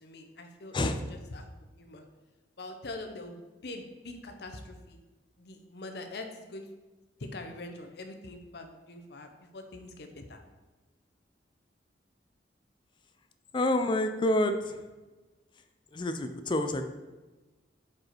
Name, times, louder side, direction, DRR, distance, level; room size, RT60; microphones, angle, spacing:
voice 1, 0.0-0.8 1.1-1.5 1.7-2.0 2.6-5.0 5.4-6.7 7.2-10.4, left 2 dB, 60° left, 6 dB, 0.7 m, -43 dB
voice 2, 13.5-14.9 15.9-16.8, left 1 dB, 25° left, 8 dB, 0.4 m, -28 dB
4.8 x 4.8 x 4.4 m, 1.2 s
head